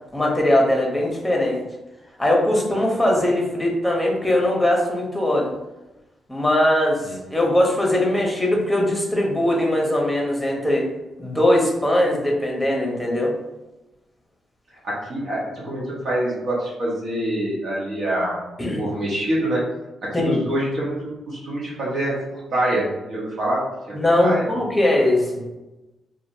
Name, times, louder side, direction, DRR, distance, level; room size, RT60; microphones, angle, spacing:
voice 1, 0.1-1.6 2.2-5.5 6.3-10.9 11.2-13.3 18.6-18.8 20.1-20.4 23.9-25.4, left 1 dB, 5° left, -1 dB, 0.9 m, -20 dB
voice 2, 14.8-18.4 18.7-19.6 20.2-23.6 24.2-24.5, right 1 dB, 65° right, -6 dB, 1.1 m, -25 dB
2.9 x 2.5 x 2.7 m, 1.0 s
cardioid pair, 75°, 0 cm